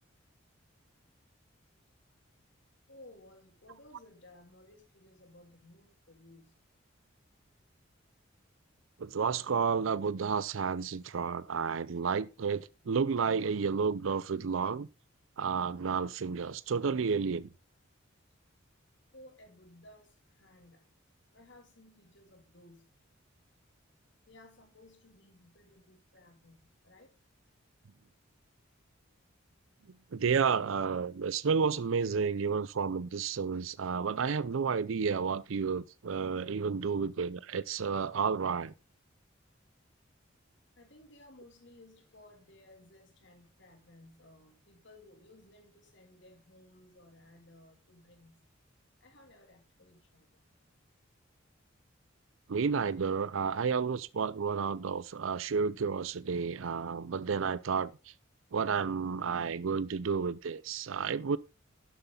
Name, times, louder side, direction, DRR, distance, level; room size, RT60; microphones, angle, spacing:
voice 1, 2.9-6.5 19.1-20.9 21.3-22.9 24.2-27.1 40.8-48.4 49.0-50.4, left 1 dB, 60° left, 2.7 m, -58 dB
voice 2, 9.0-14.9 15.4-17.5 30.1-38.7 52.5-57.9 58.5-61.4, right 5 dB, 75° right, 0.5 m, -31 dB
11.5 x 8.1 x 3.8 m
head